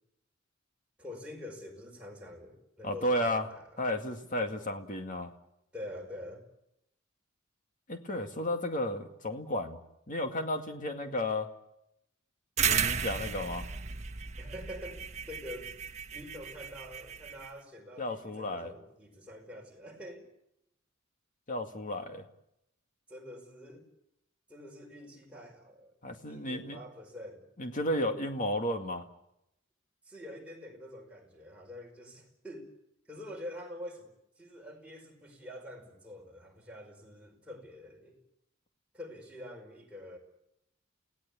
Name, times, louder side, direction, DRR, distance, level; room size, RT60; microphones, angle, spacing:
voice 1, 1.0-3.9 5.7-6.4 14.4-15.0 15.3-15.7 16.1-20.3 23.1-23.8 24.5-25.9 26.3-27.4 30.0-32.7 33.1-38.2 38.9-40.2, left 1 dB, 5° right, -1 dB, 5.3 m, -46 dB
voice 2, 2.8-3.5 3.8-5.3 7.9-9.8 10.1-11.5 12.7-13.6 18.0-18.7 21.5-22.2 26.0-26.8 27.6-29.0, left 1 dB, 40° left, 5 dB, 2.2 m, -33 dB
sound 1, 12.6-17.5, right 7 dB, 35° right, 1.3 m, -34 dB
29.0 x 17.5 x 8.6 m, 0.83 s
head